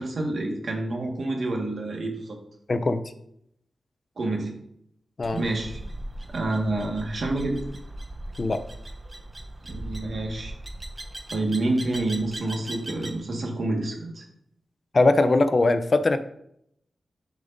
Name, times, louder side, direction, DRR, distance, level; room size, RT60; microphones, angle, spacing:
voice 1, 0.0-2.4 4.2-4.5 5.3-5.8 6.3-7.6 9.6-10.5 11.3-14.2, right 2 dB, 60° right, 1 dB, 1.7 m, -28 dB
voice 2, 2.7-3.0 5.2-5.4 8.4-8.6 14.9-16.2, left 2 dB, 45° left, 10 dB, 0.6 m, -20 dB
sound 1, 5.2-13.2, right 1 dB, 25° right, 0.8 m, -39 dB
10.5 x 5.0 x 2.7 m, 0.74 s
cardioid pair, 75°, 0 cm